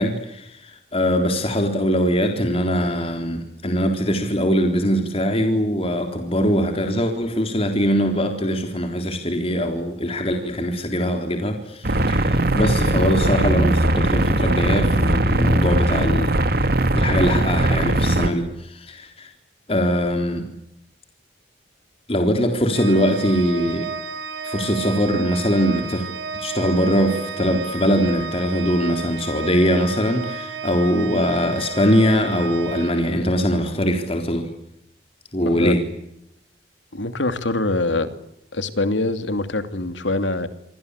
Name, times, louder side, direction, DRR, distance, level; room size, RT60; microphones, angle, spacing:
voice 1, 0.0-16.3 16.9-18.5 18.8-19.3 19.7-20.5 22.1-23.9 24.4-26.1 26.3-34.5 35.3-35.8, equal, 30° left, 4 dB, 3.7 m, -22 dB
sound 1, 11.8-18.3, right 1 dB, 55° right, 2.3 m, -19 dB
Organ, 22.7-33.6, right 4 dB, 75° right, 3.6 m, -32 dB
voice 2, 36.9-38.1 38.5-40.5, left 2 dB, 80° left, 10 dB, 2.9 m, -24 dB
28.5 x 24.5 x 8.3 m, 0.82 s
head